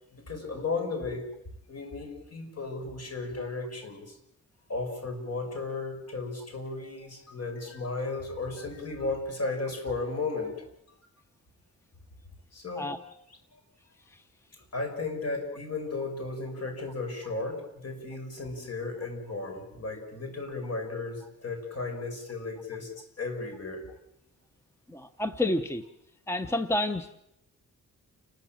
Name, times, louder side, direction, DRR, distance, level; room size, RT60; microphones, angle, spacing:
voice 1, 0.1-1.3 1.7-4.2 4.7-10.7 12.5-12.9 14.7-23.8, left 3 dB, 50° left, 4 dB, 6.1 m, -35 dB
voice 2, 24.9-25.8 26.3-27.2, left 1 dB, 10° left, 9 dB, 0.9 m, -29 dB
29.0 x 14.0 x 8.9 m, 0.84 s
wide cardioid pair, 125°, 33 cm